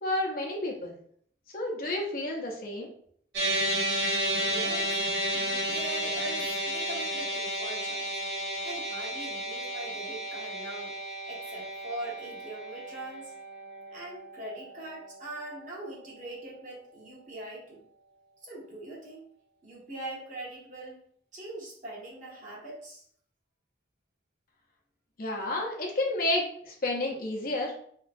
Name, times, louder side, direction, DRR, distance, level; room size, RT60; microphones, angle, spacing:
voice 1, 0.0-0.9 1.5-2.9 25.2-27.7, left 1 dB, 55° left, -1 dB, 0.7 m, -30 dB
sound 1, 3.3-15.8, right 1 dB, 75° right, 0.9 m, -32 dB
voice 2, 4.4-5.0 5.3-8.1 8.6-11.0 11.3-13.3 13.9-17.8 18.4-19.3 19.6-21.0 21.3-23.0, right 1 dB, 45° right, -5 dB, 1.3 m, -42 dB
3.4 x 3.0 x 2.5 m, 0.63 s
head